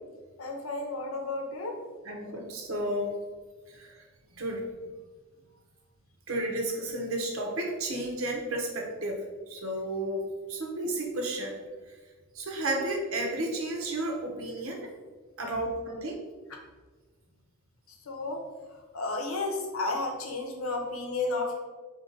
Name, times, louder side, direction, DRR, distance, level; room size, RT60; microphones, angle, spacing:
voice 1, 0.4-1.7 18.1-18.4 18.9-21.6, left 3 dB, 85° left, 2 dB, 0.8 m, -32 dB
voice 2, 2.0-3.1 3.7-4.0 4.3-4.6 6.3-11.5 12.3-14.9 15.4-16.2, right 1 dB, 75° right, 1 dB, 0.8 m, -32 dB
4.0 x 2.8 x 3.8 m, 1.4 s
head